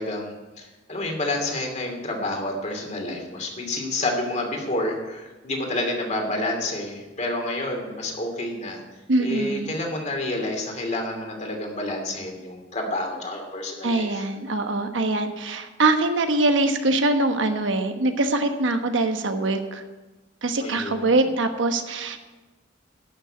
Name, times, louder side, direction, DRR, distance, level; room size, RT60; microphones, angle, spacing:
voice 1, 0.0-8.8 9.2-14.3 20.6-21.1, left 2 dB, 40° left, 2 dB, 2.7 m, -29 dB
voice 2, 9.1-9.7 13.8-19.8 20.4-22.2, right 2 dB, 85° right, 7 dB, 1.2 m, -23 dB
12.0 x 6.7 x 9.0 m, 1.2 s
head